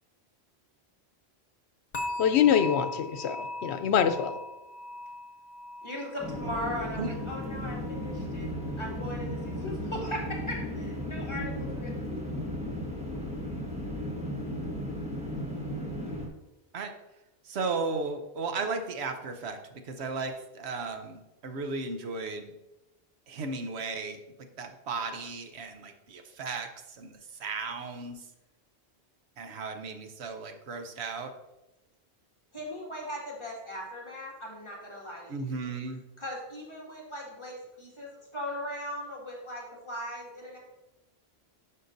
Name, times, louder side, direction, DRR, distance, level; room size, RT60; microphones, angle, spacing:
sound 1, 1.9-9.0 9.3-9.7 10.2-10.3, left 2 dB, 40° left, 0.9 m, -41 dB
voice 1, 2.2-4.4, left 8 dB, 90° left, 10 dB, 0.9 m, -25 dB
voice 2, 5.8-12.2 32.5-35.6 36.2-40.6, left 1 dB, 25° left, -4 dB, 2.0 m, -38 dB
sound 2, 6.2-16.3, equal, 5° right, 1.2 m, -35 dB
voice 3, 17.4-19.6 19.8-22.5 23.3-24.2 24.6-26.7 27.0-28.2 29.4-31.3 35.3-36.0, right 4 dB, 90° right, 6 dB, 1.1 m, -35 dB
11.0 x 5.8 x 2.6 m, 0.95 s
omnidirectional pair, 1.1 m